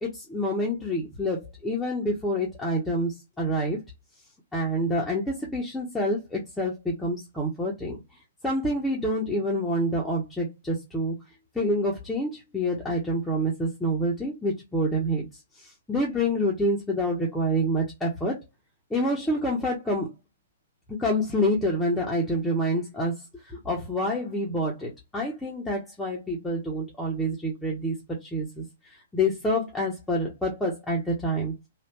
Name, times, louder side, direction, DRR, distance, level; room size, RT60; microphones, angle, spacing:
voice 1, 0.0-3.8 4.5-8.0 8.4-11.2 11.5-15.3 15.6-18.4 18.9-20.1 20.9-31.5, equal, 5° left, 1.0 m, -27 dB
3.1 x 2.5 x 3.0 m
figure-of-eight pair, 115°, 0 cm